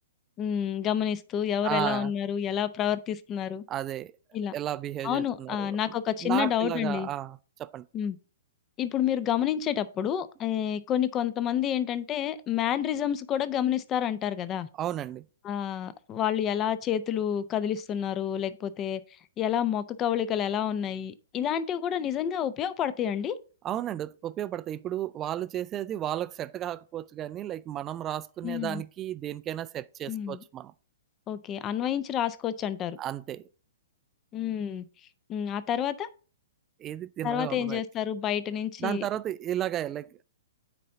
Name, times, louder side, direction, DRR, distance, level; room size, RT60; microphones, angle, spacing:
voice 1, 0.4-3.6 4.3-4.5 5.0-7.1 7.9-8.2 8.8-14.7 15.4-19.0 19.4-23.4 28.4-28.8 30.1-30.4 31.3-33.0 34.3-34.9 35.3-36.1 37.2-39.0, left 9 dB, 25° left, 0.6 m, -29 dB
voice 2, 1.6-2.1 3.7-4.1 4.5-5.7 6.2-7.9 14.8-15.2 23.6-30.7 33.0-33.4 36.8-37.8 38.8-40.2, right 12 dB, 25° right, 0.4 m, -33 dB
9.3 x 4.2 x 3.6 m
figure-of-eight pair, 115°, 0 cm